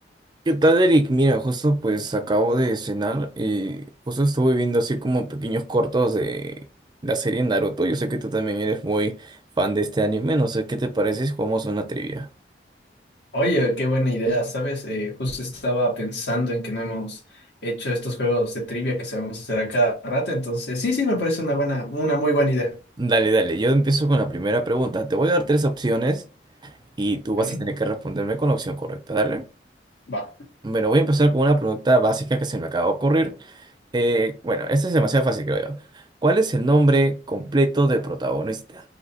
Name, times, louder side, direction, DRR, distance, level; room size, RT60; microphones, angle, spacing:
voice 1, 0.5-6.5 7.0-12.3 23.0-26.2 26.6-26.7 27.0-29.4 30.6-33.3 33.9-35.8 36.2-38.8, right 2 dB, 25° right, 0.5 m, -22 dB
voice 2, 13.3-17.2 17.6-22.8 27.4-27.6 30.1-30.3, equal, 75° left, 1.9 m, -24 dB
4.0 x 2.8 x 4.2 m
head